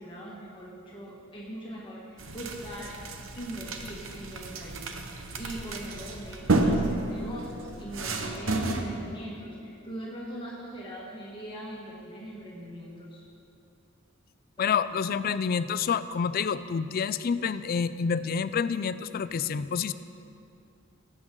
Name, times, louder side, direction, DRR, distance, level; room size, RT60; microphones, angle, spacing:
voice 1, 0.0-2.9 3.4-13.2 14.6-14.8, right 1 dB, 25° left, -4 dB, 1.4 m, -41 dB
sound 1, 2.2-8.8, right 2 dB, 75° right, 0.9 m, -31 dB
voice 2, 14.6-19.9, left 6 dB, 45° left, 14 dB, 0.3 m, -28 dB
17.5 x 7.8 x 3.8 m, 2.6 s
head